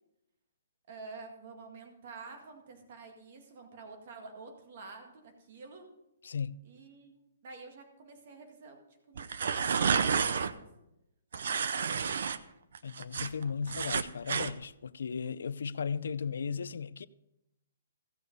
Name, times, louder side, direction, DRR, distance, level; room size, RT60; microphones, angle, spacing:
voice 1, 0.9-5.9 6.6-8.8 9.1-9.3 9.5-10.7 11.3-11.9, right 4 dB, 40° right, 1.9 m, -49 dB
voice 2, 6.2-6.6 12.8-17.1, left 6 dB, 75° left, 0.4 m, -36 dB
sound 1, 9.2-10.5 11.3-12.4 12.7-14.5, right 6 dB, 60° right, 0.6 m, -30 dB
16.0 x 6.6 x 5.3 m
hypercardioid pair, 175°, 0 cm